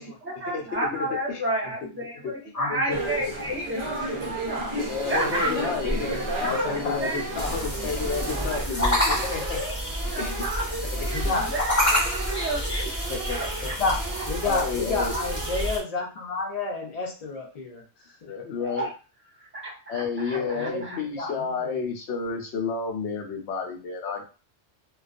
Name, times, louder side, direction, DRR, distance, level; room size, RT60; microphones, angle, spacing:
voice 1, 0.2-5.6 6.2-6.7 7.0-7.2 8.4-8.9 9.5-9.7 10.1-12.9 13.3-13.8 14.1-14.2 18.6-18.9 19.3-21.0, right 1 dB, 10° right, -4 dB, 0.8 m, -32 dB
sound 1, 2.9-8.7, right 1 dB, 45° right, 0.4 m, -32 dB
sound 2, 4.8-15.8, right 4 dB, 90° right, 0.9 m, -38 dB
voice 2, 4.9-6.1 6.4-9.6 10.2-10.4 10.7-11.1 13.1-13.8 14.4-15.1 18.3-18.9 19.9-24.2, left 5 dB, 75° left, 3 dB, 0.9 m, -31 dB
voice 3, 6.4-7.0 11.1-11.5 13.8-14.0 14.3-17.8 18.2-18.3 20.3-21.8, left 3 dB, 40° left, 1 dB, 0.6 m, -30 dB
sound 3, 7.4-15.8, equal, 15° left, 0.9 m, -28 dB
2.3 x 2.3 x 2.4 m, 0.33 s
omnidirectional pair, 1.2 m